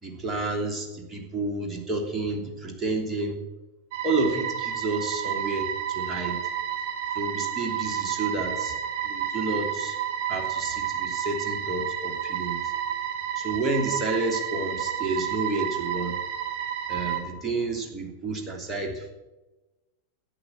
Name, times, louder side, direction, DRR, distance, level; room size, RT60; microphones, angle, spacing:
voice 1, 0.0-3.4 4.0-6.4 7.1-8.8 9.0-10.0 10.3-12.7 13.3-16.1 16.9-19.1, right 3 dB, 15° right, 1 dB, 2.9 m, -30 dB
sound 1, 3.9-17.2, right 9 dB, 45° right, 4.3 m, -30 dB
13.0 x 9.1 x 7.3 m, 1.1 s
figure-of-eight pair, 90°, 0 cm